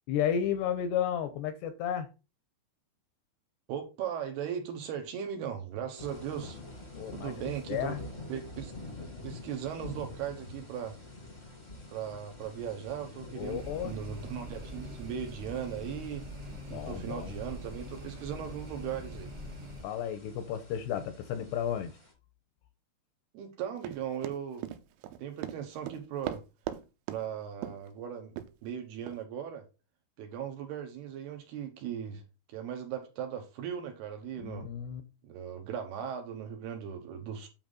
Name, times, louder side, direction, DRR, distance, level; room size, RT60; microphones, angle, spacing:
voice 1, 0.1-2.1 7.0-7.3 7.7-8.0 13.4-13.9 16.7-17.4 19.8-21.9 34.4-35.0, left 9 dB, 80° left, 2.7 m, -33 dB
voice 2, 3.7-6.6 7.1-7.9 8.3-8.7 9.2-11.0 11.9-16.3 16.7-19.3 23.3-24.7 25.2-26.4 27.1-29.6 30.2-32.2 32.5-34.7 35.2-37.5, right 8 dB, 70° right, 2.9 m, -38 dB
sound 1, 6.0-22.1, left 2 dB, 20° left, 1.2 m, -48 dB
sound 2, 13.4-19.8, equal, 45° right, 2.0 m, -43 dB
Run, 23.8-26.8 27.1-27.2 27.6-27.9 28.4-28.5 29.1-29.2, right 12 dB, 85° right, 3.3 m, -38 dB
9.1 x 5.7 x 4.0 m
omnidirectional pair, 5.4 m